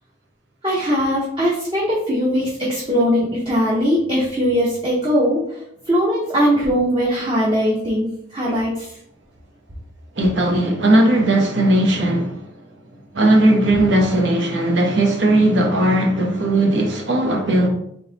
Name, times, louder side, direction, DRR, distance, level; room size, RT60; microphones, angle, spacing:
voice 1, 0.6-5.4 5.9-8.9, equal, 25° right, 0.8 m, -20 dB
voice 2, 10.2-12.4 13.1-17.7, right 1 dB, 65° right, 1.0 m, -17 dB
3.7 x 3.0 x 3.9 m
head